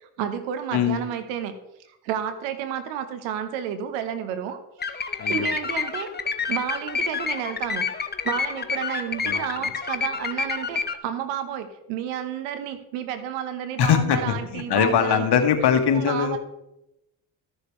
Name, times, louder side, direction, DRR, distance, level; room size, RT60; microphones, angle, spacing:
voice 1, 0.0-1.5 1.9-4.6 4.9-6.1 6.5-7.9 8.2-15.5 15.9-16.4, right 9 dB, 85° right, 9 dB, 1.1 m, -31 dB
voice 2, 0.7-1.0 5.2-5.5 9.2-9.7 13.8-16.4, left 8 dB, 60° left, 6 dB, 1.5 m, -22 dB
sound 1, 4.8-11.0, left 5 dB, 20° left, 0.8 m, -28 dB
13.5 x 6.4 x 3.2 m, 0.88 s
supercardioid pair, 65°, 45 cm